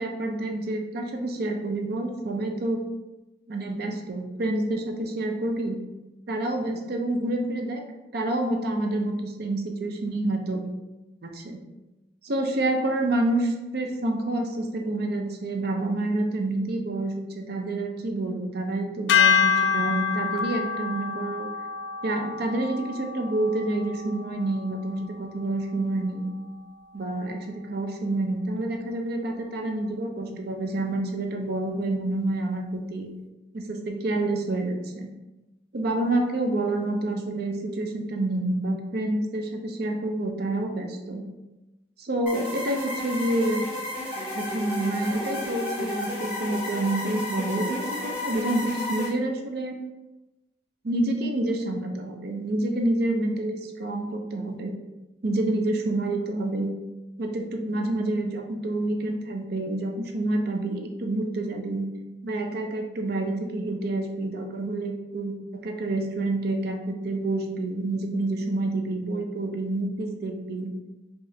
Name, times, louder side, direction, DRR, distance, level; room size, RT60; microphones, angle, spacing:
voice 1, 0.0-2.8 3.5-5.8 6.3-7.8 8.1-10.6 11.2-11.6 12.2-21.5 22.0-26.3 26.9-33.1 33.5-35.1 35.7-41.2 42.0-43.7 44.3-49.8 50.8-54.7 55.2-56.7 57.2-61.9 62.2-70.7, right 2 dB, 55° right, 4 dB, 0.5 m, -28 dB
sound 1, 19.1-25.4, left 6 dB, 70° left, 0.3 m, -27 dB
sound 2, 42.3-49.1, left 1 dB, 5° right, 1.1 m, -32 dB
4.9 x 2.4 x 2.7 m, 1.0 s
head